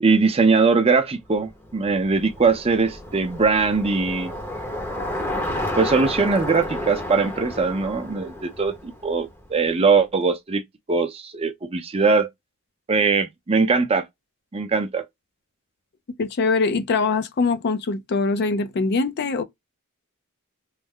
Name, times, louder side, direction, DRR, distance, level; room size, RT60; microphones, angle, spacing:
voice 1, 0.0-4.3 5.7-10.6 10.9-12.3 12.9-14.1 14.5-15.1, right 4 dB, 25° right, 0.5 m, -21 dB
Bicycle, 1.3-9.7, left 1 dB, 10° left, 0.7 m, -31 dB
voice 2, 16.2-19.4, left 4 dB, 50° left, 0.4 m, -23 dB
3.2 x 2.0 x 3.5 m
head